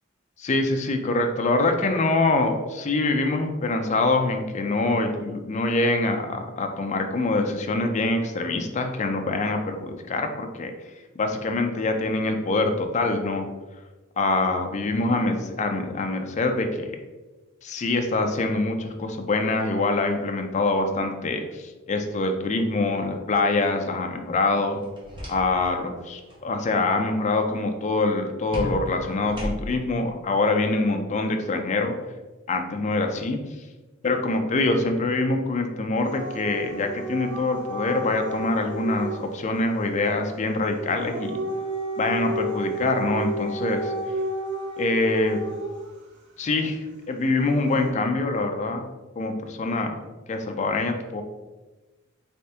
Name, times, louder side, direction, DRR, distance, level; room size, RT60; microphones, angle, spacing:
voice 1, 0.4-10.7 11.2-13.5 14.2-17.0 17.6-24.8 25.3-32.0 32.5-33.4 34.0-41.4 42.0-43.9 44.8-45.4 46.4-46.8 47.1-48.8 49.2-49.9 50.3-51.2, left 2 dB, 35° left, 5 dB, 0.4 m, -24 dB
sound 1, 24.8-25.8 26.1-26.4 28.5-29.9, equal, 25° right, 0.9 m, -34 dB
Dog / Siren, 36.0-39.3 40.8-45.9 47.5-47.9, right 1 dB, 60° right, 0.7 m, -32 dB
3.4 x 3.3 x 2.7 m, 1.2 s
head